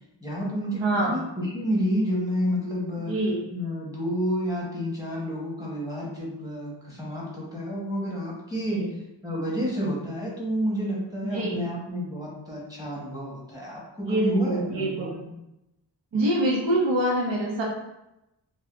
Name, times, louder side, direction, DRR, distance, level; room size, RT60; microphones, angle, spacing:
voice 1, 0.2-3.1 3.5-8.8 9.2-15.1, equal, 10° right, -4 dB, 1.1 m, -30 dB
voice 2, 0.8-1.2 3.1-3.4 8.7-8.9 11.2-11.7 14.1-15.3 16.1-17.6, right 1 dB, 80° right, -3 dB, 0.7 m, -25 dB
3.3 x 2.6 x 2.5 m, 0.90 s
wide cardioid pair, 80°, 44 cm